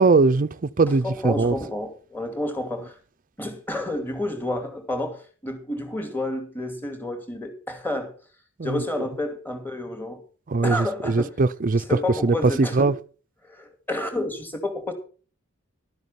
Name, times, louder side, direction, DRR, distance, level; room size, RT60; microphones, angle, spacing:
voice 1, 0.0-1.5 8.6-8.8 10.5-11.8 12.2-12.9, right 3 dB, 40° right, 0.6 m, -21 dB
voice 2, 1.0-2.9 3.4-8.1 8.6-10.2 10.6-11.3 11.7-12.9 13.4-14.9, left 1 dB, 10° left, 2.5 m, -30 dB
12.5 x 9.5 x 5.9 m
head